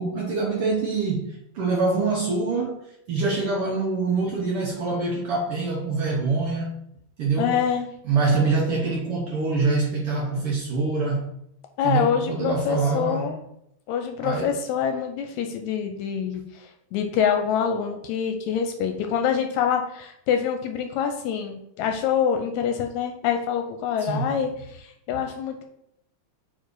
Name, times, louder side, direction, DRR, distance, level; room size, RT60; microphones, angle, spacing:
voice 1, 0.0-6.7 7.2-7.6 8.0-11.3 11.8-13.4 14.2-14.6 24.0-24.3 25.1-25.2, right 4 dB, 65° right, -2 dB, 1.6 m, -25 dB
voice 2, 7.4-7.9 11.8-13.4 13.9-25.6, left 8 dB, 85° left, 5 dB, 2.0 m, -26 dB
4.8 x 4.7 x 4.7 m, 0.75 s
omnidirectional pair, 3.3 m